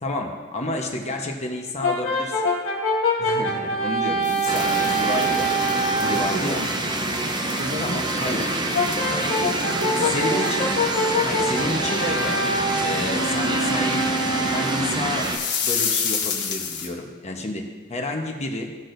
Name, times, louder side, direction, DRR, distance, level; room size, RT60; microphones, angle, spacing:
voice 1, 0.0-2.4 3.2-5.5 6.0-6.6 7.8-8.5 10.1-10.7 11.2-12.4 12.8-14.1 14.4-15.3 15.6-18.7, left 1 dB, 30° left, 2 dB, 1.0 m, -30 dB
Brass instrument, 1.8-6.4 8.7-15.1, equal, 85° left, 1.7 m, -25 dB
sound 1, 4.2-10.1 10.5-10.7 10.9-11.0 11.6-11.7 12.3-12.4 15.2-16.9, left 6 dB, 55° left, 1.3 m, -31 dB
sound 2, 4.5-15.4, right 2 dB, 20° right, 0.7 m, -26 dB
voice 2, 5.9-6.7 7.6-8.5 8.8-10.5, right 1 dB, 65° right, 2 dB, 1.2 m, -34 dB
15.5 x 6.2 x 2.6 m, 1.4 s
head